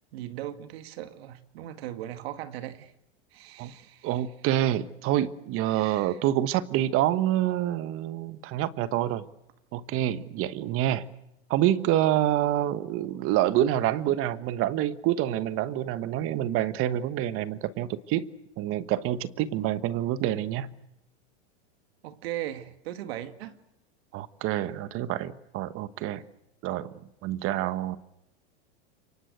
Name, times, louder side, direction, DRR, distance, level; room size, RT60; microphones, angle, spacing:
voice 1, 0.1-2.9 3.3-4.2 5.7-6.2 22.0-23.6, right 12 dB, 70° right, 2.2 m, -38 dB
voice 2, 4.0-9.2 9.7-11.1 11.5-18.2 18.6-20.7 24.1-26.2 26.6-26.9 27.2-28.0, right 12 dB, 40° right, 1.3 m, -27 dB
28.0 x 24.0 x 8.0 m
supercardioid pair, 125°, 33 cm